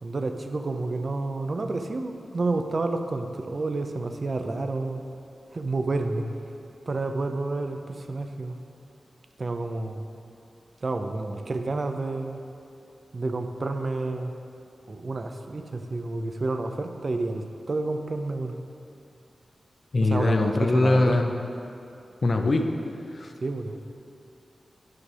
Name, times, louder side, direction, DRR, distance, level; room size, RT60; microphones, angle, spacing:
voice 1, 0.0-5.0 5.5-6.3 6.9-8.6 9.4-10.0 10.8-12.4 13.1-14.3 14.9-18.6 20.0-21.2 23.4-23.8, right 3 dB, 45° right, 6 dB, 0.4 m, -29 dB
voice 2, 19.9-21.3 22.2-22.7 23.1-23.3, left 2 dB, 50° left, 4 dB, 0.6 m, -22 dB
9.5 x 3.3 x 6.0 m, 2.6 s
wide cardioid pair, 100°, 0 cm